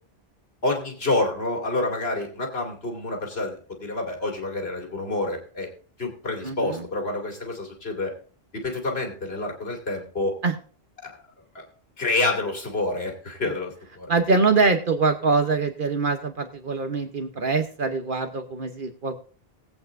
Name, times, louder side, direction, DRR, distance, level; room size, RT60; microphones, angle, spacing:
voice 1, 0.6-5.7 6.0-8.1 8.5-10.4 11.0-11.1 11.5-11.6 12.0-14.1, left 2 dB, 75° left, 1 dB, 2.8 m, -28 dB
voice 2, 6.4-6.8 10.4-10.5 14.1-19.2, right 4 dB, 55° right, 6 dB, 1.1 m, -24 dB
19.5 x 8.5 x 2.6 m, 0.42 s
omnidirectional pair, 1.0 m